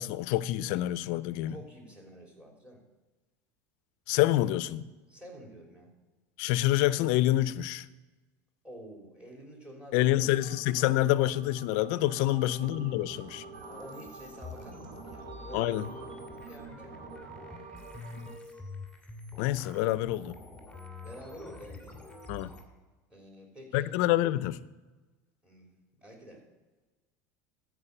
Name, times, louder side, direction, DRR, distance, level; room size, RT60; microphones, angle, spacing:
voice 1, 0.0-1.5 4.1-4.8 6.4-7.8 9.9-13.4 15.5-15.9 19.4-20.3 22.3-22.5 23.7-24.6, left 15 dB, 65° left, 0.5 m, -27 dB
voice 2, 1.5-2.8 4.4-4.5 5.1-5.9 8.6-10.9 12.2-12.5 13.7-17.0 19.8-19.9 21.0-21.9 23.1-23.9 25.4-25.7 26.0-26.4, equal, 15° right, 3.4 m, -49 dB
sound 1, 10.2-18.4, right 4 dB, 65° right, 1.3 m, -46 dB
sound 2, 13.5-22.6, left 3 dB, 5° left, 2.5 m, -47 dB
13.5 x 4.9 x 6.6 m
supercardioid pair, 110°, 9 cm